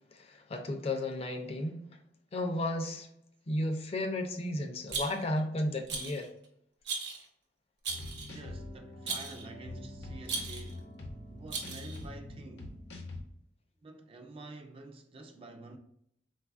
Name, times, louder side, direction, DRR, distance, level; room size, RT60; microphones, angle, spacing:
voice 1, 0.1-1.8 2.3-3.1 3.5-6.3, left 1 dB, 35° left, 0.4 m, -33 dB
Rattle, 4.9-5.4 5.9-6.3 6.8-7.2 7.8-8.4 9.1-9.4 10.2-10.7 11.5-12.0, right 4 dB, 75° right, 0.8 m, -37 dB
sound 1, 7.9-13.2, left 2 dB, 75° left, 0.7 m, -44 dB
voice 2, 8.3-10.9 11.3-12.8 13.8-15.8, right 2 dB, 30° right, 0.3 m, -49 dB
3.9 x 2.3 x 2.4 m
head